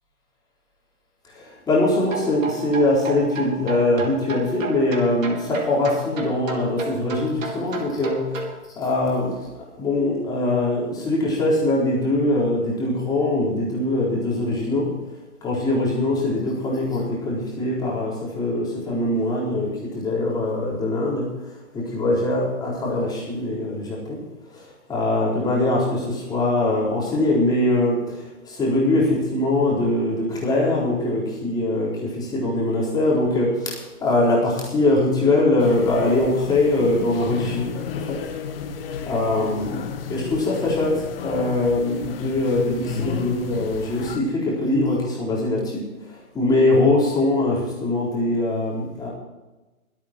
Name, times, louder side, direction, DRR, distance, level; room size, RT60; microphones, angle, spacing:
voice 1, 1.3-8.5 8.8-9.5 9.8-14.9 15.4-24.2 24.5-38.2 39.1-39.8 40.1-49.1, left 2 dB, 10° left, -5 dB, 4.1 m, -22 dB
sound 1, 2.0-8.6, right 4 dB, 60° right, 3.4 m, -33 dB
sound 2, 35.6-44.2, left 7 dB, 40° left, 1.9 m, -33 dB
23.5 x 8.8 x 4.5 m, 1.1 s
hypercardioid pair, 150°, 43 cm